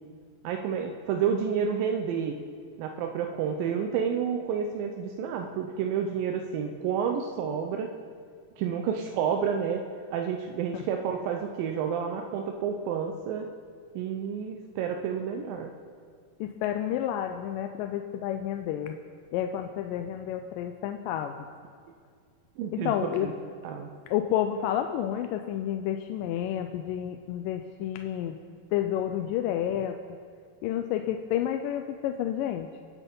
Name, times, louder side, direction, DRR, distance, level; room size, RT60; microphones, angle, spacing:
voice 1, 0.4-2.4 2.8-7.9 8.6-9.8 10.1-13.5 14.0-15.7 22.6-23.3 23.6-23.9, right 7 dB, 85° right, 4 dB, 2.4 m, -30 dB
voice 2, 16.4-19.0 19.3-21.4 22.7-23.3 24.1-28.4 28.7-30.0 30.6-32.7, left 10 dB, 80° left, 6 dB, 2.2 m, -30 dB
24.0 x 8.3 x 5.4 m, 2.1 s
omnidirectional pair, 4.0 m